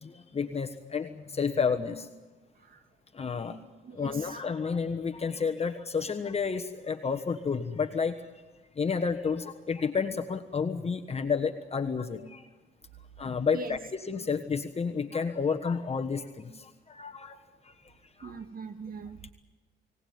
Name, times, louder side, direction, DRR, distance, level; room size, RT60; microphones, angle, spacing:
voice 1, 0.0-2.1 3.2-3.6 4.0-8.2 8.8-12.4 13.2-17.4 18.2-18.4, left 5 dB, 30° left, 6 dB, 1.3 m, -31 dB
voice 2, 3.8-4.4 13.5-13.8 18.2-19.3, right 4 dB, 45° right, 8 dB, 2.1 m, -41 dB
24.0 x 18.0 x 9.4 m, 1.3 s
cardioid pair, 90°, 20 cm